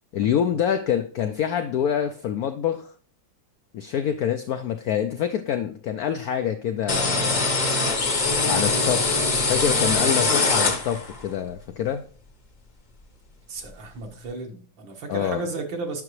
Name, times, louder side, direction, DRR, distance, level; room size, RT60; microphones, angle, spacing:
voice 1, 0.1-2.9 3.7-7.6 8.5-12.0 15.1-15.4, left 9 dB, 80° left, 8 dB, 0.8 m, -26 dB
sound 1, 6.9-11.2, left 3 dB, 35° left, 0.7 m, -22 dB
voice 2, 13.5-16.0, right 3 dB, 75° right, 3 dB, 2.2 m, -34 dB
9.4 x 5.9 x 3.1 m, 0.42 s
omnidirectional pair, 2.1 m